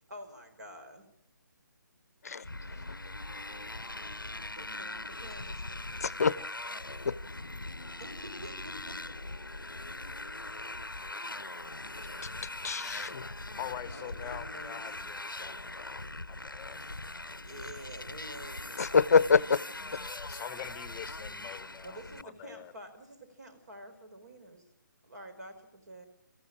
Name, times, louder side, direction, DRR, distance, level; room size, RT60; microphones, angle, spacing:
voice 1, 0.1-1.1 4.2-6.1 8.0-9.2 13.9-15.2 16.7-17.0 17.4-19.0 21.8-24.7 25.0-26.1, right 1 dB, 55° right, 8 dB, 4.5 m, -49 dB
Motorcycle, 2.4-22.2, left 2 dB, 85° left, 0.7 m, -41 dB
voice 2, 6.0-6.3 7.0-7.1 12.6-13.3 18.8-19.6, left 5 dB, 50° left, 20 dB, 0.7 m, -25 dB
voice 3, 13.5-16.8 19.9-22.7, left 11 dB, 15° left, 14 dB, 1.0 m, -45 dB
26.0 x 14.5 x 8.7 m, 0.81 s
figure-of-eight pair, 140°, 11 cm